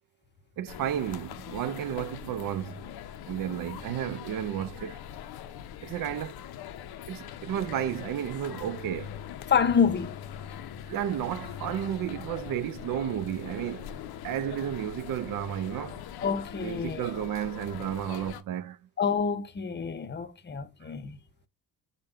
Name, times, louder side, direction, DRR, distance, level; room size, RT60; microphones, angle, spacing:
voice 1, 0.6-2.9 3.3-5.0 5.8-6.4 7.1-9.1 10.9-14.0 14.2-16.0 16.6-18.8 20.8-20.9, right 10 dB, 60° right, 0.5 m, -32 dB
sound 1, 0.7-18.4, left 10 dB, 85° left, 0.5 m, -42 dB
voice 2, 9.5-10.2 16.2-17.1 19.0-21.2, left 6 dB, 30° left, 0.6 m, -27 dB
5.1 x 2.2 x 4.5 m
cardioid pair, 110°, 37 cm